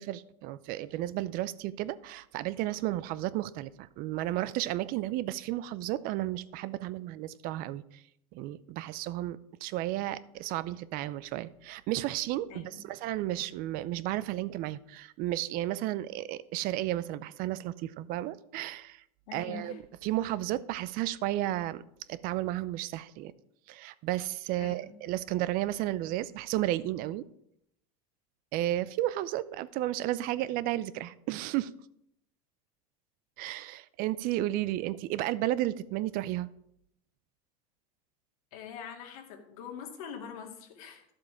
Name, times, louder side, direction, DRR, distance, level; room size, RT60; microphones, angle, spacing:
voice 1, 0.0-8.0 8.3-19.0 19.3-21.8 22.1-23.3 23.7-27.2 28.5-31.7 33.4-36.5, right 15 dB, 50° right, 17 dB, 0.5 m, -33 dB
voice 2, 12.5-12.8 19.3-19.8 24.6-25.0 38.5-41.0, left 7 dB, 70° left, 3 dB, 2.1 m, -44 dB
11.0 x 7.6 x 4.9 m, 0.76 s
supercardioid pair, 115°, 19 cm